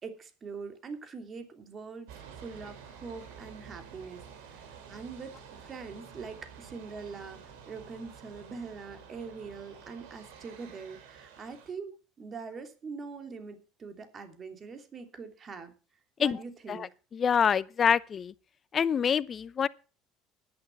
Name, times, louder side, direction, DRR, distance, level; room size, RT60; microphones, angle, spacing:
voice 1, 0.0-15.7 16.2-16.9, right 5 dB, 40° right, 3.0 m, -43 dB
sound 1, 2.1-11.7, right 7 dB, 80° right, 3.2 m, -50 dB
voice 2, 17.1-18.3 18.7-19.7, left 7 dB, 40° left, 0.8 m, -26 dB
11.0 x 10.5 x 5.7 m
hypercardioid pair, 70°, 0 cm